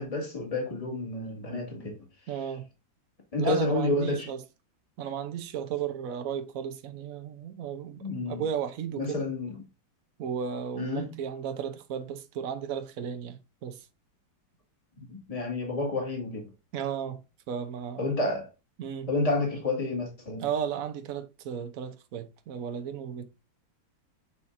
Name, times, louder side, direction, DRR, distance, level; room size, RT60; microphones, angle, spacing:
voice 1, 0.0-2.0 3.3-4.3 8.0-8.4 9.0-9.6 10.8-11.1 15.1-16.5 18.0-18.5 19.1-20.4, left 2 dB, 20° left, 2.0 m, -30 dB
voice 2, 2.3-2.7 3.4-4.4 5.0-9.2 10.2-13.8 16.7-17.2 17.5-18.1 18.8-19.1 20.4-23.2, right 8 dB, 60° right, 1.0 m, -34 dB
7.2 x 5.1 x 2.6 m
omnidirectional pair, 2.1 m